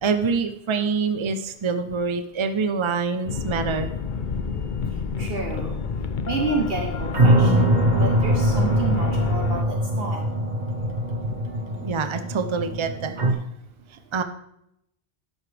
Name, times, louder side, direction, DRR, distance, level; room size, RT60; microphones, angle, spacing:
voice 1, 0.0-3.9 11.8-13.2 14.1-14.2, right 5 dB, 30° right, 8 dB, 0.7 m, -25 dB
sound 1, 3.3-9.6, left 5 dB, 55° left, 0.8 m, -29 dB
voice 2, 5.2-5.8 6.3-7.7 8.0-10.2, right 3 dB, 65° right, 2 dB, 1.3 m, -29 dB
sound 2, 7.1-13.3, right 1 dB, 45° right, 1.4 m, -22 dB
12.5 x 11.0 x 3.4 m, 0.78 s
omnidirectional pair, 1.0 m